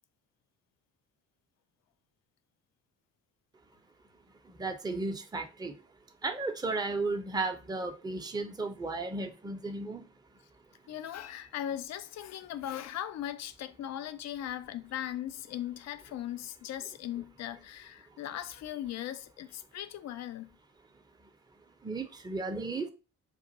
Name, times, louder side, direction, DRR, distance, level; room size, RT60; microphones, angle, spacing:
voice 1, 4.5-5.7 6.2-10.0 21.8-22.9, right 3 dB, 10° right, 0.6 m, -34 dB
voice 2, 10.9-20.6, left 11 dB, 35° left, 0.4 m, -39 dB
6.0 x 2.5 x 2.7 m
figure-of-eight pair, 40°, 49 cm